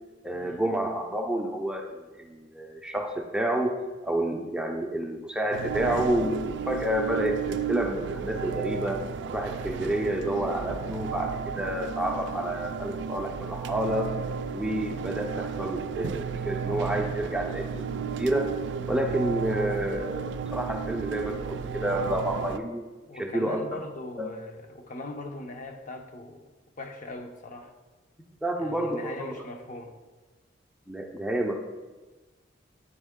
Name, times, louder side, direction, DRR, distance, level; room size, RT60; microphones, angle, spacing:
voice 1, 0.2-1.9 2.2-3.8 4.0-9.0 9.3-14.1 14.5-17.8 18.2-18.5 18.9-22.8 23.2-23.6 24.2-24.3 28.4-29.1 30.9-31.6, right 1 dB, 5° right, 2 dB, 0.4 m, -29 dB
sound 1, 5.5-22.6, right 6 dB, 65° right, 0.3 m, -33 dB
voice 2, 23.1-26.4 26.8-27.7 28.6-29.9, left 2 dB, 45° left, 4 dB, 0.6 m, -40 dB
9.7 x 3.5 x 3.6 m, 1.2 s
head